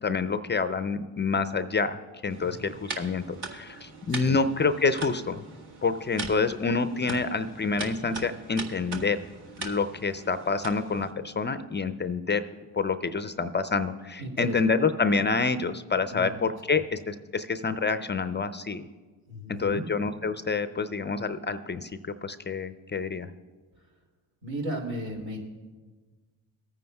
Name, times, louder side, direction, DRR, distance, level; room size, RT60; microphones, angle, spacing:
voice 1, 0.0-5.4 5.8-9.2 9.6-12.4 12.8-18.8 19.5-21.9 22.2-23.3, left 4 dB, 25° left, 11 dB, 0.4 m, -27 dB
sound 1, 2.3-11.1, right 3 dB, 55° right, 1.5 m, -41 dB
voice 2, 14.2-14.6 16.1-16.3 19.3-19.9 24.4-25.4, right 1 dB, 75° right, -2 dB, 2.5 m, -35 dB
19.5 x 9.2 x 2.3 m, 1.3 s
supercardioid pair, 55°, 47 cm